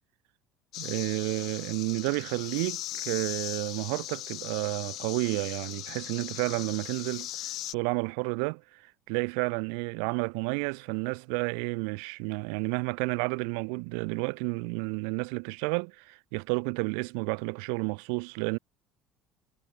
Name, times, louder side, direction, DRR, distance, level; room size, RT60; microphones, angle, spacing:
sound 1, 0.7-7.7, left 15 dB, 55° left, 5.9 m, -39 dB
voice 1, 0.8-18.6, right 40 dB or more, 85° right, 6.8 m, -31 dB
cardioid pair, 140°, 0 cm